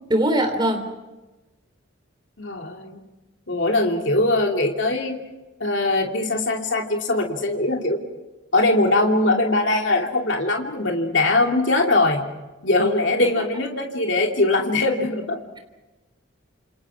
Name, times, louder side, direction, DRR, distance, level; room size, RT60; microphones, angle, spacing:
voice 1, 0.1-0.9, right 1 dB, 20° right, 4 dB, 3.8 m, -21 dB
voice 2, 2.4-3.0 3.5-5.2 5.6-8.0 8.5-12.3 12.6-15.4, left 2 dB, 60° left, 1 dB, 2.9 m, -21 dB
29.0 x 28.5 x 4.9 m, 1.1 s
head